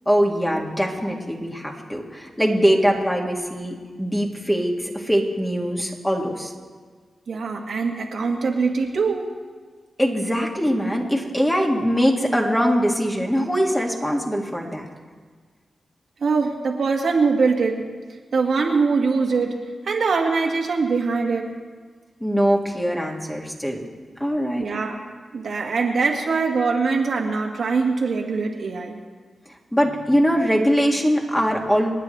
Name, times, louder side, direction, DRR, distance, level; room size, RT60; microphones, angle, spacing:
voice 1, 0.1-6.5 10.0-14.9 22.2-23.9 24.2-24.8 29.7-31.9, equal, 5° left, 0 dB, 2.2 m, -22 dB
voice 2, 7.3-9.3 16.2-17.8 18.3-19.6 19.9-21.5 24.6-25.0 25.3-29.0, right 4 dB, 75° right, 0 dB, 1.7 m, -22 dB
28.5 x 9.6 x 3.3 m, 1.5 s
cardioid pair, 75°, 0 cm